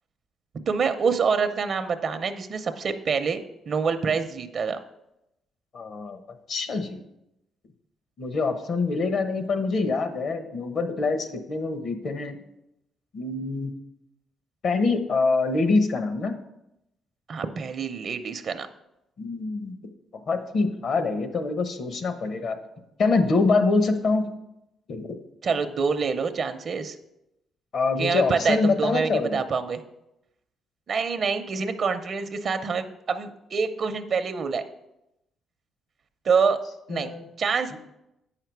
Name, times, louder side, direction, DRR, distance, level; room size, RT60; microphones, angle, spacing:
voice 1, 0.7-4.8 17.3-18.7 25.4-27.0 28.0-29.8 30.9-34.6 36.2-36.6 36.9-37.1 37.4-37.8, right 5 dB, 55° right, 9 dB, 0.6 m, -26 dB
voice 2, 5.7-6.2 6.5-7.0 8.2-12.4 13.1-13.8 14.6-16.3 19.2-19.8 20.1-22.6 23.0-24.3 24.9-25.2 27.7-29.4 36.9-37.3 37.7-37.8, left 3 dB, 60° left, 8 dB, 1.0 m, -25 dB
8.7 x 5.8 x 4.6 m, 0.87 s
cardioid pair, 90°, 0 cm